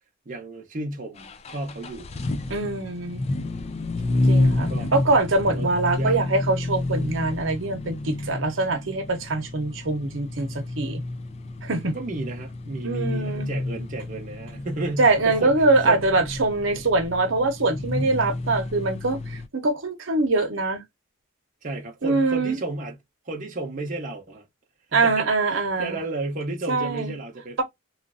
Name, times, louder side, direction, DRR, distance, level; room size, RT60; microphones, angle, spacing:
voice 1, 0.3-2.1 4.7-4.9 5.5-6.2 11.9-16.0 21.6-23.0 23.3-24.5 24.9-25.3 25.8-27.6, right 2 dB, 40° right, 0.7 m, -33 dB
sound 1, 1.2-19.5, left 2 dB, 30° left, 0.3 m, -29 dB
voice 2, 2.5-3.3 4.3-11.0 11.6-12.0 12.8-13.5 15.0-20.8 22.0-22.6 24.9-26.0 26.7-27.1, right 3 dB, 75° right, 0.8 m, -23 dB
3.1 x 2.5 x 2.4 m
head